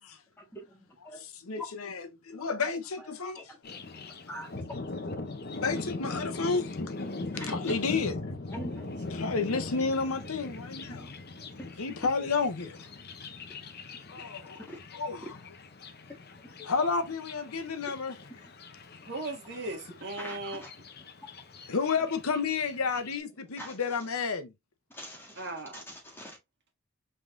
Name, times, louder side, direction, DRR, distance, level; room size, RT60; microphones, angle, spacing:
voice 1, 0.5-1.2 1.6-1.7 3.4-3.6 4.3-4.5 7.4-7.5 8.5-8.8 10.9-11.3 11.6-11.7 14.7-14.8 16.3-16.7 18.3-18.4 20.2-20.7 22.0-22.1 23.4-24.0 24.9-26.4, equal, 10° left, 1.6 m, -44 dB
voice 2, 1.2-3.4 5.6-6.6 7.3-8.2 9.2-11.1 11.8-12.8 14.1-14.6 14.9-15.3 16.6-18.1 21.7-24.5, left 4 dB, 75° left, 0.8 m, -31 dB
Thunder, 3.6-23.2, left 2 dB, 45° left, 0.7 m, -41 dB
voice 3, 19.1-20.6 25.4-25.8, right 2 dB, 50° right, 1.7 m, -38 dB
5.3 x 3.8 x 2.6 m
head